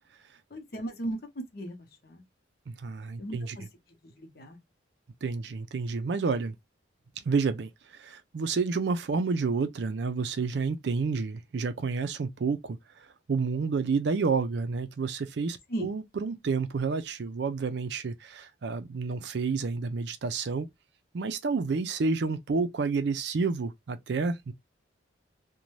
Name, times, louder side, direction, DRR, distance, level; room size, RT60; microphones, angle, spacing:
voice 1, 0.5-2.2 3.2-3.6 4.0-4.6 15.7-15.9, right 1 dB, 55° left, 0.8 m, -37 dB
voice 2, 2.7-3.6 5.2-6.6 7.2-12.8 13.3-20.7 21.1-24.5, right 4 dB, 65° right, 0.4 m, -30 dB
2.6 x 2.2 x 3.1 m
head